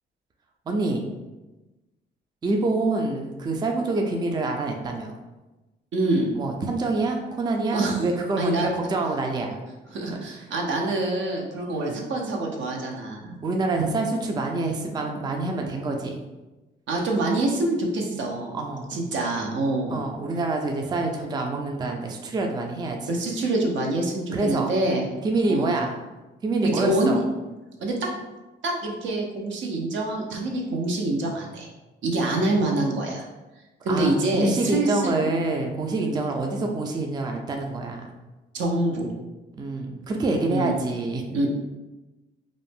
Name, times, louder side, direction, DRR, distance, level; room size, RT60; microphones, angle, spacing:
voice 1, 0.7-1.1 2.4-5.2 6.3-9.6 11.7-12.0 13.4-16.2 18.5-19.0 19.9-23.1 24.3-24.7 25.2-25.9 26.4-27.2 33.9-38.1 39.6-41.4, right 2 dB, 20° right, 3 dB, 0.3 m, -26 dB
voice 2, 5.9-6.3 7.7-8.0 8.4-8.7 9.9-13.4 16.9-18.6 18.9-20.0 23.1-25.1 25.5-25.8 26.6-27.2 27.8-28.1 28.6-31.7 32.0-33.3 33.8-35.2 36.0-36.2 38.5-39.1 40.5-40.7 41.3-41.5, right 2 dB, 70° right, 0 dB, 0.6 m, -25 dB
2.5 x 2.0 x 3.4 m, 1.1 s
cardioid pair, 90°, 20 cm